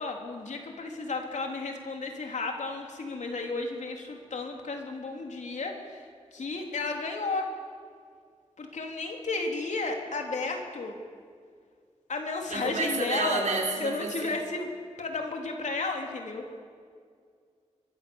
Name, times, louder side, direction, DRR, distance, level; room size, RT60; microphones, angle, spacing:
voice 1, 0.0-7.5 8.6-11.0 12.1-13.4 13.8-14.7 15.0-16.4, left 3 dB, 80° left, 2 dB, 3.6 m, -33 dB
voice 2, 12.5-14.4, right 3 dB, 80° right, -2 dB, 5.7 m, -30 dB
27.0 x 23.0 x 7.2 m, 2.1 s
wide cardioid pair, 95°, 12 cm